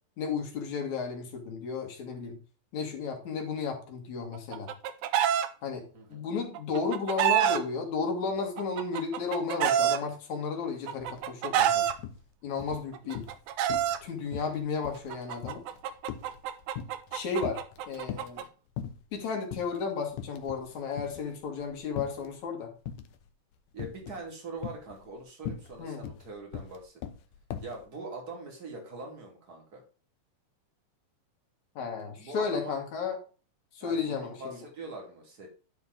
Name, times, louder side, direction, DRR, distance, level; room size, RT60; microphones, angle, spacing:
voice 1, 0.2-2.4 2.7-4.7 5.6-5.8 6.1-11.8 12.4-13.2 14.0-15.6 17.1-17.6 17.9-18.5 19.1-22.7 25.8-26.0 31.8-33.2 33.7-34.6, left 5 dB, 65° left, 3 dB, 3.1 m, -33 dB
Chicken rooster, 4.3-5.5 6.5-7.6 8.6-10.0 10.9-11.9 12.9-14.0 15.1-18.4, right 10 dB, 75° right, 2.0 m, -27 dB
sound 1, 11.0-11.2 11.5-12.2 12.6-13.4 13.7-14.0 14.3-17.1 17.4-18.4 18.8-19.2 19.5-19.7 20.1-20.7 21.0-22.3 22.9-23.3 23.8-24.3 24.6-27.8, left 9 dB, 80° left, 2.3 m, -40 dB
voice 2, 23.7-27.0 27.6-29.8 32.2-32.8 33.8-35.5, right 3 dB, 30° right, 1 dB, 2.7 m, -42 dB
11.0 x 4.6 x 5.0 m, 0.37 s
omnidirectional pair, 3.7 m